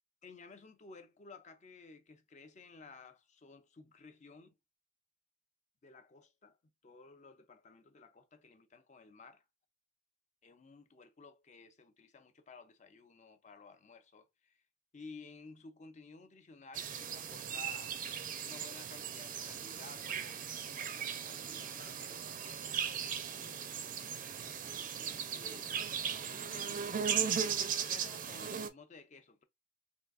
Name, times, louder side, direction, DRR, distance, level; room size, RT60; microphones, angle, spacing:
voice 1, 0.2-4.6 5.8-6.6 6.8-9.4 10.4-14.5 14.9-18.0 18.4-23.9 25.3-25.9 26.3-29.4, left 4 dB, 40° left, 0.5 m, -55 dB
sound 1, 16.7-28.7, right 7 dB, 45° right, 0.4 m, -38 dB
3.6 x 2.7 x 2.4 m
head